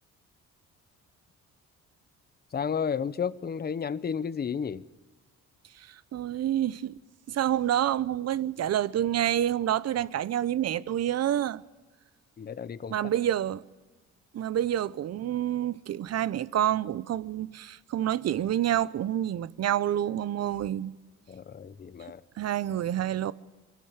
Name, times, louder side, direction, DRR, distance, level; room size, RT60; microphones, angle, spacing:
voice 1, 2.5-4.8 12.4-12.9 21.3-22.2, left 7 dB, 30° left, 0.8 m, -32 dB
voice 2, 5.8-7.0 7.3-11.6 12.9-13.6 14.3-21.0 22.4-23.3, right 11 dB, 55° right, 0.7 m, -28 dB
23.0 x 12.5 x 9.6 m
cardioid pair, 90°, 30 cm